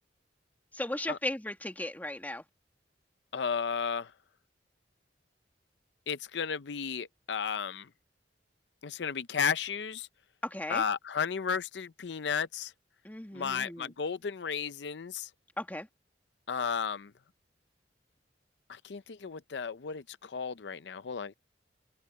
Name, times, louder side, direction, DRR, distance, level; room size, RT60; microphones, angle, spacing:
voice 1, 0.7-2.4 10.4-10.8 13.0-13.9 15.6-15.9, left 1 dB, 10° left, 1.9 m, -36 dB
voice 2, 3.3-4.1 6.1-7.9 8.8-10.1 10.7-12.7 13.3-15.3 16.5-17.1 18.7-21.3, left 6 dB, 75° left, 0.6 m, -33 dB
head